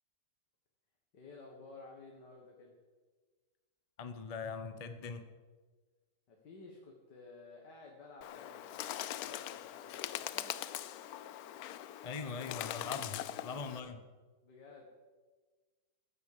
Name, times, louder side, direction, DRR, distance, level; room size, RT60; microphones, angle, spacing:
voice 1, 1.1-2.7 6.3-10.5 13.8-13.9 14.4-14.9, left 3 dB, 85° left, 0 dB, 2.3 m, -54 dB
voice 2, 4.0-5.2 12.0-14.0, left 5 dB, 30° left, 8 dB, 0.8 m, -41 dB
Bird, 8.2-13.8, left 12 dB, 70° left, 1.0 m, -42 dB
14.5 x 10.0 x 6.8 m, 1.4 s
omnidirectional pair, 1.8 m